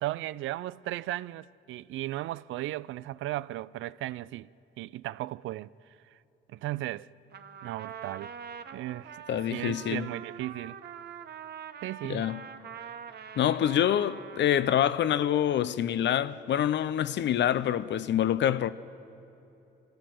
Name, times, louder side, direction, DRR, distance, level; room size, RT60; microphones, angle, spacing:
voice 1, 0.0-4.5 4.8-5.7 6.1-6.2 6.5-7.1 7.6-8.3 8.7-9.2 9.5-10.8 11.8-12.3, right 15 dB, 80° right, 0.4 m, -36 dB
Trumpet, 7.3-15.2, right 8 dB, 55° right, 1.0 m, -44 dB
voice 2, 9.3-10.1 12.1-12.4 13.4-18.7, left 10 dB, 65° left, 0.7 m, -26 dB
25.0 x 15.5 x 7.7 m
cardioid pair, 90°, 20 cm